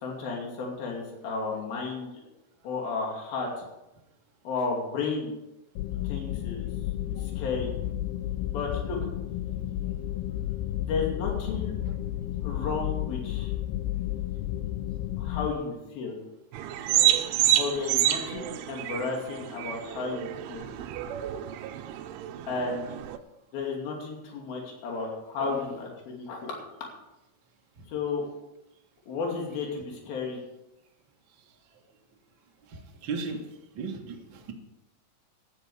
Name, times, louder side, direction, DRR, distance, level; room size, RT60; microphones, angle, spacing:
voice 1, 0.0-2.2 2.6-3.5 4.4-5.4 6.0-6.7 7.2-7.7 8.5-9.0 10.8-11.8 12.4-13.5 15.2-16.2 17.5-20.7 22.5-23.0 23.5-26.6 27.9-28.2 29.1-30.4, left 4 dB, 65° left, -1 dB, 4.3 m, -33 dB
sound 1, 5.8-15.5, left 13 dB, 80° left, 2.3 m, -32 dB
sound 2, 16.5-23.2, right 12 dB, 85° right, 2.6 m, -28 dB
voice 2, 32.7-33.4 33.7-34.5, right 4 dB, 55° right, 1 dB, 1.3 m, -35 dB
14.5 x 11.0 x 4.9 m, 0.94 s
omnidirectional pair, 4.7 m